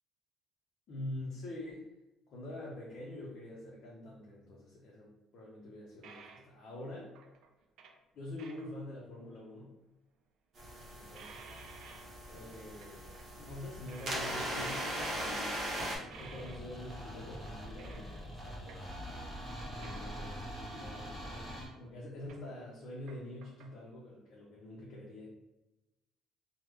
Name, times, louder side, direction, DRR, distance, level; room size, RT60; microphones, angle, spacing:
voice 1, 0.9-1.9 2.3-7.1 8.1-9.7 10.9-11.4 12.3-15.7 15.9-25.3, left 1 dB, 45° left, -4 dB, 0.6 m, -46 dB
sound 1, 5.5-5.6 6.0-6.5 7.1-8.0 8.4-8.7 9.3-9.4 11.2-12.5 12.8-13.3 13.6-14.8 15.3-15.6 16.1-16.6 17.8-18.1 18.5-18.9 19.4-19.5 19.8-20.4 21.5-21.6 21.9-23.7, right 5 dB, 55° right, 0.4 m, -55 dB
sound 2, 10.6-16.0, equal, 30° right, 0.8 m, -39 dB
sound 3, 16.1-21.7, equal, ahead, 0.7 m, -44 dB
3.1 x 2.0 x 3.4 m, 0.98 s
cardioid pair, 175°, 0 cm